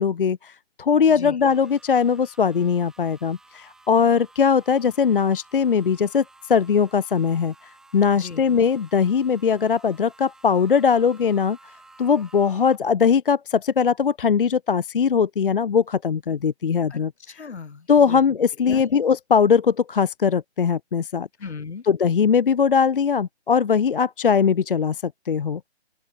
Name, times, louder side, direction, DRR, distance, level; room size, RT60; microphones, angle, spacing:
voice 1, 0.0-7.5 7.9-11.6 12.0-17.1 17.9-21.3 21.9-25.7, left 6 dB, 55° left, 0.6 m, -20 dB
sound 1, 1.4-12.8, right 2 dB, ahead, 6.1 m, -53 dB
voice 2, 16.9-18.2 18.6-18.8 21.4-21.8, left 5 dB, 80° left, 2.7 m, -37 dB
open air
hypercardioid pair, 170°, 33 cm